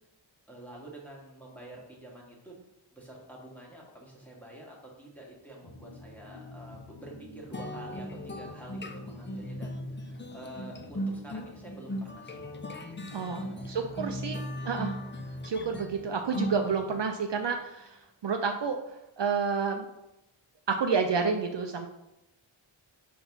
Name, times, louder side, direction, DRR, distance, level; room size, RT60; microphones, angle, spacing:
voice 1, 0.5-2.6 2.9-14.0 14.5-14.6, right 1 dB, 5° left, -3 dB, 1.6 m, -48 dB
sound 1, 5.6-17.5, left 2 dB, 65° left, 1.0 m, -50 dB
sound 2, 7.5-17.2, equal, 25° left, 0.5 m, -38 dB
voice 2, 13.1-14.4 14.6-15.0 15.4-18.8 19.2-19.9 20.7-21.9, right 5 dB, 60° right, 4 dB, 0.6 m, -30 dB
4.7 x 3.9 x 5.4 m, 0.91 s
wide cardioid pair, 75°, 49 cm